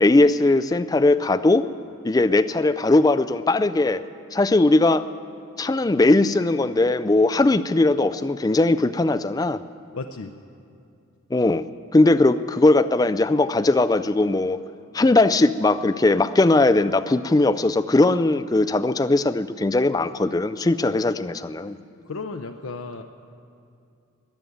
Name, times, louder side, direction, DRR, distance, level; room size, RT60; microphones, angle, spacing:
voice 1, 0.0-1.6 2.0-4.0 4.3-5.0 5.6-9.6 11.3-11.6 11.9-14.6 14.9-21.8, left 2 dB, 20° left, 12 dB, 0.3 m, -19 dB
voice 2, 9.9-10.3 22.1-23.0, left 3 dB, 85° left, 4 dB, 0.6 m, -33 dB
15.0 x 9.8 x 9.2 m, 2.5 s
head